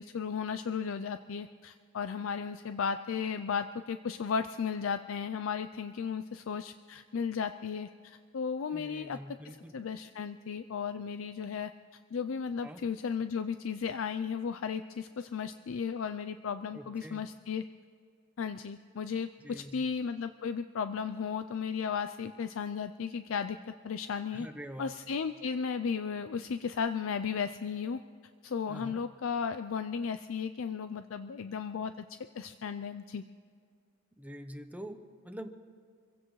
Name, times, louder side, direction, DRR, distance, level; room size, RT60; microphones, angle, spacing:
voice 1, 0.0-9.2 9.4-11.7 12.1-17.6 18.4-24.5 24.8-28.0 28.4-32.1 32.3-33.2, left 6 dB, 70° left, 11 dB, 0.4 m, -35 dB
voice 2, 8.7-9.8 12.6-12.8 16.7-17.3 19.4-19.9 24.3-25.0 28.7-29.0 34.2-35.5, equal, 10° right, 7 dB, 0.8 m, -45 dB
26.5 x 16.0 x 3.1 m, 2.2 s
head